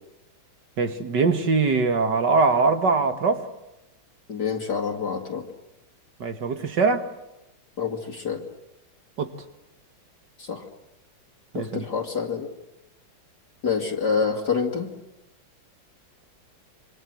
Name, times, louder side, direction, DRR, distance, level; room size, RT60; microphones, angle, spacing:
voice 1, 0.8-3.5 6.2-7.1 9.2-9.3 11.5-11.9, right 4 dB, 60° right, 8 dB, 2.5 m, -22 dB
voice 2, 4.3-5.4 7.8-8.4 10.4-10.6 11.5-12.5 13.6-14.9, left 6 dB, 55° left, 2 dB, 2.7 m, -27 dB
27.5 x 25.0 x 7.8 m, 0.97 s
omnidirectional pair, 2.1 m